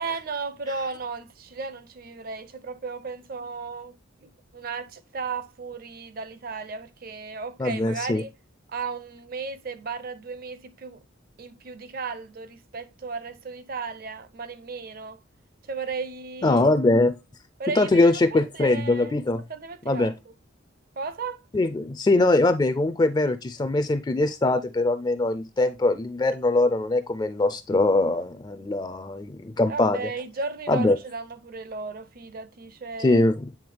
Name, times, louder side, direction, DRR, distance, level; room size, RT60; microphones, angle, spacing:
voice 1, 0.0-4.0 4.2-8.3 8.7-11.0 11.4-15.2 15.7-16.7 17.6-19.2 19.5-20.1 21.0-21.4 29.7-33.3, right 4 dB, 50° right, 0.6 m, -35 dB
voice 2, 7.6-8.2 16.4-17.2 17.8-19.4 19.9-20.1 21.5-30.1 30.7-31.0 33.0-33.4, left 2 dB, 20° left, 0.3 m, -22 dB
8.6 x 3.5 x 3.2 m
head